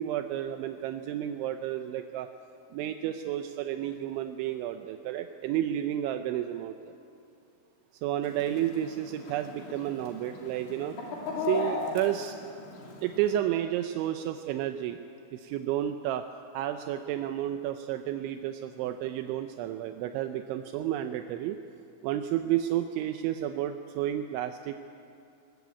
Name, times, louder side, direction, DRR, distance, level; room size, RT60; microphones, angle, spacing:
voice 1, 0.0-2.3 2.7-6.8 8.0-11.0 11.4-12.4 13.0-15.0 15.3-16.2 16.5-21.6 22.0-24.7, right 12 dB, 80° right, 7 dB, 3.0 m, -31 dB
Chicken rooster, 8.2-13.3, left 3 dB, 80° left, 5.5 m, -37 dB
21.0 x 21.0 x 8.4 m, 2.7 s
omnidirectional pair, 5.5 m